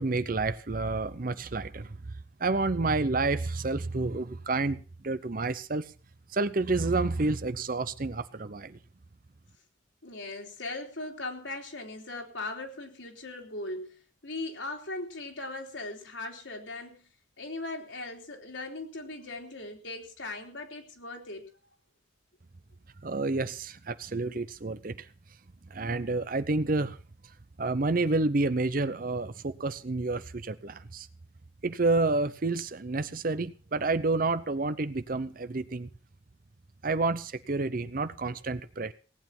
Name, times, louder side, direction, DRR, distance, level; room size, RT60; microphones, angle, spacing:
voice 1, 0.0-1.9 2.4-5.9 6.3-8.8 23.0-25.1 25.7-27.0 27.6-31.1 31.6-35.9 36.8-38.9, right 3 dB, 45° right, 0.7 m, -29 dB
voice 2, 10.0-14.0 14.2-17.0 17.4-21.5, left 2 dB, 70° left, 3.5 m, -39 dB
18.5 x 9.3 x 5.9 m
head